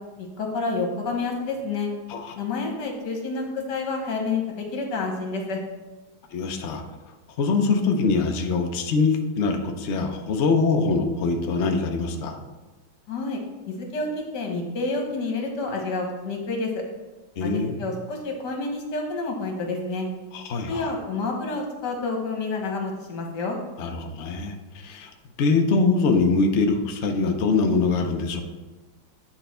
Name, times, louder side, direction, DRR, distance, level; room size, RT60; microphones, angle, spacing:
voice 1, 0.2-1.9 2.4-5.6 13.1-13.4 13.7-16.8 17.4-20.1 20.7-23.6, left 3 dB, 60° left, 2 dB, 1.8 m, -29 dB
voice 2, 6.3-6.8 7.4-12.4 17.4-17.8 20.3-20.9 23.8-24.5 24.8-25.1 25.4-28.4, left 4 dB, 85° left, 4 dB, 0.6 m, -23 dB
9.2 x 4.5 x 4.3 m, 1.2 s
omnidirectional pair, 2.2 m